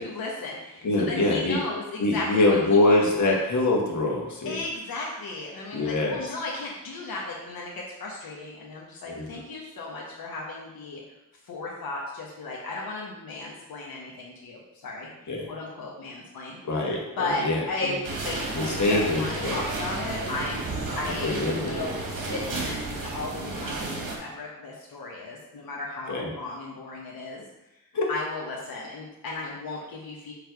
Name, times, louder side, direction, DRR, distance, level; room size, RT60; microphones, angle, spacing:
voice 1, 0.0-3.0 3.3-3.4 4.4-11.0 11.5-15.1 15.5-27.4 28.1-30.3, left 2 dB, 85° left, -3 dB, 1.1 m, -35 dB
voice 2, 0.8-1.6 2.0-4.6 5.7-6.3 9.1-9.2 15.3-15.5 16.6-18.0 18.5-19.6 20.9-21.0 21.2-21.9 26.1-26.3 27.9-28.1, left 2 dB, 55° left, -1 dB, 1.5 m, -24 dB
sound 1, 18.0-24.2, right 2 dB, 65° right, 1.4 m, -32 dB
7.0 x 3.3 x 4.6 m, 0.95 s
wide cardioid pair, 105°, 35 cm